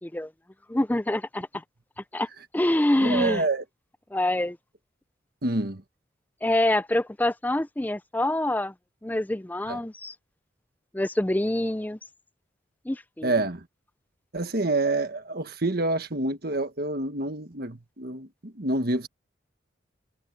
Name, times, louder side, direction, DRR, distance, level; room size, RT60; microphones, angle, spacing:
voice 1, 0.7-1.5 2.1-2.3 2.5-3.4 4.1-4.6 6.4-8.7 9.0-10.1 10.9-12.0 12.9-13.3, left 1 dB, 10° left, 0.5 m, -25 dB
voice 2, 3.0-3.6 5.4-5.8 9.7-9.8 13.2-13.7 14.3-19.1, right 2 dB, 55° right, 1.5 m, -27 dB
head